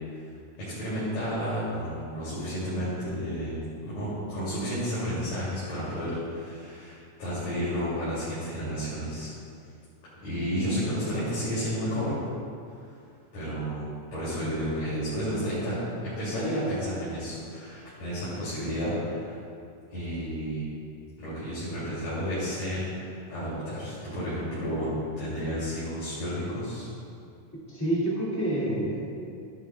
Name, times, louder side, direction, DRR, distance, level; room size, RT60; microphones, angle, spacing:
voice 1, 0.6-9.3 10.2-12.2 13.3-19.4 19.9-20.7 21.2-26.9, equal, 60° left, -11 dB, 3.9 m, -31 dB
voice 2, 27.7-29.0, right 1 dB, 5° left, -7 dB, 2.1 m, -27 dB
14.5 x 11.0 x 2.3 m, 2.5 s
omnidirectional pair, 3.7 m